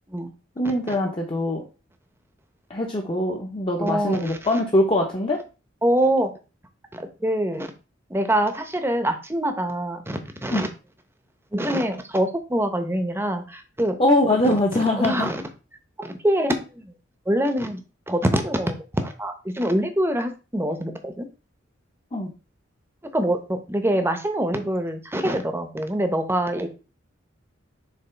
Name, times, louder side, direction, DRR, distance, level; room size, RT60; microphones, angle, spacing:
voice 1, 0.6-1.6 2.7-5.4 10.5-10.7 14.0-15.3 22.1-22.3, left 1 dB, 25° left, 0 dB, 0.9 m, -22 dB
voice 2, 3.8-4.4 5.8-6.3 6.9-7.7 8.1-10.7 11.5-14.0 15.0-15.4 16.0-16.9 17.3-21.3 23.1-26.7, right 1 dB, 10° right, 7 dB, 0.8 m, -25 dB
7.0 x 3.1 x 4.4 m, 0.32 s
head